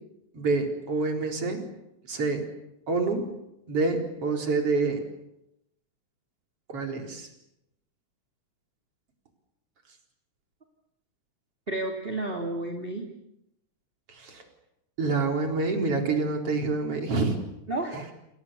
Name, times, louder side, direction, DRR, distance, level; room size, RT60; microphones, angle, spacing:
voice 1, 0.3-1.7 2.1-2.4 2.9-3.3 3.7-5.0 6.7-7.3 14.2-14.4 15.0-17.4, right 3 dB, 50° right, 3 dB, 5.1 m, -27 dB
voice 2, 11.7-13.1 17.7-18.1, right 2 dB, 20° right, 2 dB, 2.7 m, -31 dB
29.5 x 28.5 x 7.0 m, 0.85 s
omnidirectional pair, 3.5 m